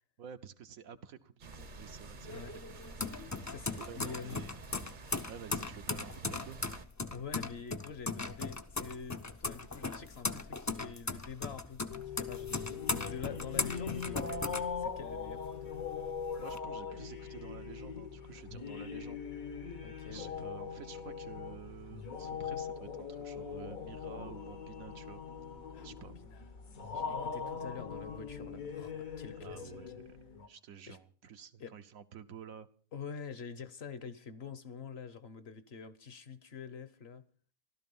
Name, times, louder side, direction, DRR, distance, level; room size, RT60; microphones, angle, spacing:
voice 1, 0.2-2.8 3.8-4.6 5.3-6.6 16.4-19.3 20.1-25.2 25.8-26.2 29.4-30.2 30.5-32.7, right 8 dB, 80° right, 1.4 m, -50 dB
sound 1, 1.4-6.9, right 5 dB, 45° right, 0.8 m, -50 dB
sound 2, 1.5-15.4 15.7-16.6, left 3 dB, 25° left, 0.4 m, -38 dB
voice 2, 3.5-4.4 7.1-14.5 14.8-15.7 19.8-20.6 25.7-25.9 26.2-29.8 30.9-31.0 31.6-31.7 32.9-37.3, left 6 dB, 55° left, 1.0 m, -46 dB
sound 3, 11.9-30.5, left 6 dB, 80° left, 1.9 m, -41 dB
14.0 x 12.5 x 5.4 m
omnidirectional pair, 1.4 m